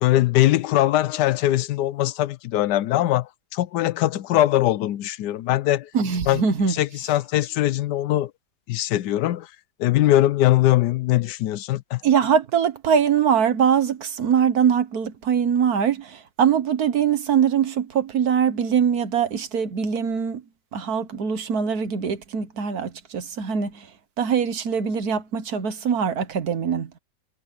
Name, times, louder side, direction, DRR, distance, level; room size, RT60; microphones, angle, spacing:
voice 1, 0.0-5.9 6.3-6.4 6.7-8.3 8.7-9.5 9.8-12.0, left 14 dB, 85° left, 1.2 m, -21 dB
voice 2, 5.9-6.7 12.0-20.4 20.7-23.9 24.2-26.9, right 7 dB, 65° right, 1.7 m, -22 dB
omnidirectional pair, 1.8 m